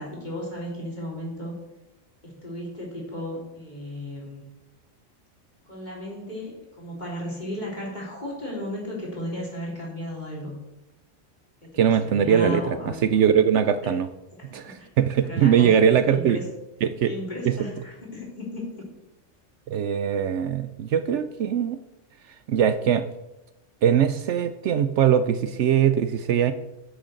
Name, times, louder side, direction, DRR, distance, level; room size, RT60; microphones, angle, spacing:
voice 1, 0.0-1.5 2.2-4.4 5.7-10.5 11.6-13.0 13.8-14.0 14.3-14.9 15.2-16.4 17.1-18.7, left 1 dB, 35° left, -3 dB, 3.4 m, -35 dB
voice 2, 11.7-12.8 13.0-14.1 14.5-16.4 16.8-17.1 17.4-17.5 19.7-21.8 22.5-23.1 23.8-26.5, right 8 dB, 70° right, 11 dB, 0.9 m, -21 dB
9.6 x 6.3 x 6.5 m, 0.98 s
omnidirectional pair, 1.3 m